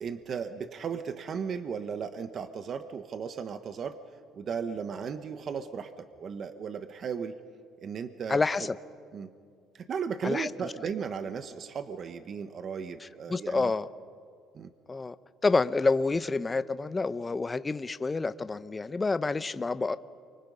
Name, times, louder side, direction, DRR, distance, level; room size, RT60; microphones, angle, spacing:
voice 1, 0.0-4.0 4.3-7.4 7.8-8.7 9.1-9.3 9.7-13.7 14.5-14.7, right 6 dB, 45° right, 10 dB, 1.1 m, -36 dB
voice 2, 8.3-8.8 10.2-10.5 13.0-13.9 14.9-15.2 15.4-20.0, left 3 dB, 20° left, 14 dB, 0.7 m, -28 dB
29.0 x 24.5 x 5.5 m, 2.1 s
cardioid pair, 115°, 0 cm